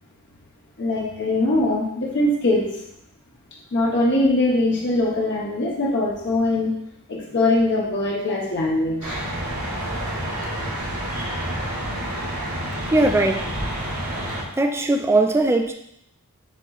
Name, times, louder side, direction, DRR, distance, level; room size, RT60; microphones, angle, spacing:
voice 1, 0.8-2.6 3.7-6.7 7.1-9.2, left 2 dB, 55° left, -4 dB, 0.9 m, -21 dB
sound 1, 9.0-14.4, right 1 dB, 75° right, 1.4 m, -28 dB
voice 2, 12.9-13.5 14.6-15.7, right 2 dB, 10° right, 5 dB, 0.3 m, -19 dB
7.3 x 2.9 x 2.4 m, 0.76 s
head